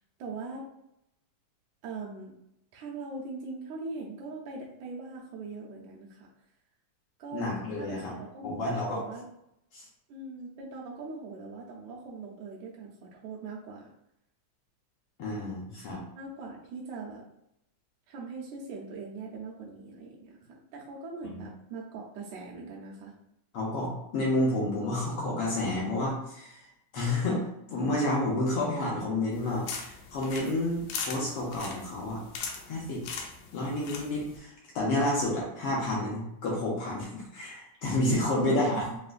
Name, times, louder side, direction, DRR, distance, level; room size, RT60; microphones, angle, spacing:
voice 1, 0.2-0.6 1.8-2.3 2.7-6.3 7.2-9.3 10.1-13.9 16.2-17.2 18.1-20.4 20.7-23.2 38.3-39.0, right 4 dB, 75° right, -3 dB, 2.0 m, -41 dB
voice 2, 7.3-8.1 8.4-9.0 9.7-9.8 15.2-16.0 21.2-21.5 23.5-26.7 26.9-32.2 32.7-33.0 33.5-38.9, left 1 dB, 70° left, -4 dB, 1.4 m, -30 dB
sound 1, 29.3-34.4, left 5 dB, 90° left, 2.0 m, -40 dB
6.2 x 2.1 x 2.4 m, 0.79 s
omnidirectional pair, 3.4 m